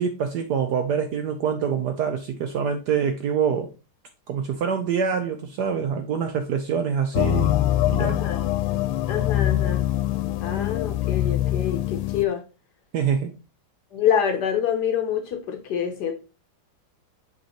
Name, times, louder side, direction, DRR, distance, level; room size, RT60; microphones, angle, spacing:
voice 1, 0.0-3.7 4.3-7.6 7.8-8.2 12.9-13.3, right 7 dB, 75° right, 6 dB, 1.0 m, -25 dB
sound 1, 7.1-12.3, left 13 dB, 90° left, 1.5 m, -23 dB
voice 2, 8.0-8.5 9.1-9.9 10.4-12.4 13.9-16.1, left 8 dB, 65° left, 5 dB, 1.1 m, -26 dB
6.2 x 5.3 x 2.9 m, 0.32 s
omnidirectional pair, 2.3 m